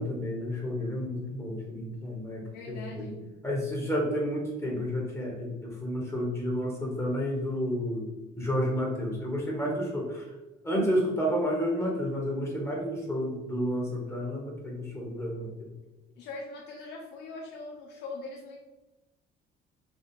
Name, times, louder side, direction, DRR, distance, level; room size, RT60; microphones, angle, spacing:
voice 1, 0.0-3.1 3.4-8.1 8.4-10.4 10.6-15.7, equal, 15° left, -2 dB, 1.3 m, -31 dB
voice 2, 2.5-3.3 16.2-18.6, left 3 dB, 80° left, -1 dB, 0.6 m, -41 dB
3.6 x 2.4 x 4.3 m, 1.0 s
cardioid pair, 110°, 17 cm